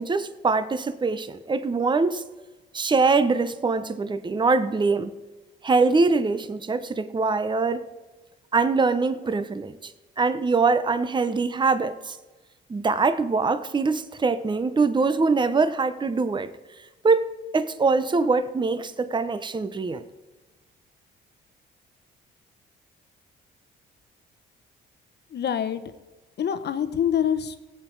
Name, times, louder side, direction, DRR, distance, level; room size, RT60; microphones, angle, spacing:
voice 1, 0.0-2.2 2.7-5.1 5.6-7.9 8.5-9.9 10.2-12.2 12.7-16.5 17.0-20.1, right 4 dB, 25° right, 0.8 m, -23 dB
voice 2, 25.3-25.8 26.4-27.6, left 9 dB, 55° left, 1.0 m, -25 dB
18.0 x 8.0 x 4.6 m
cardioid pair, 90°, 20 cm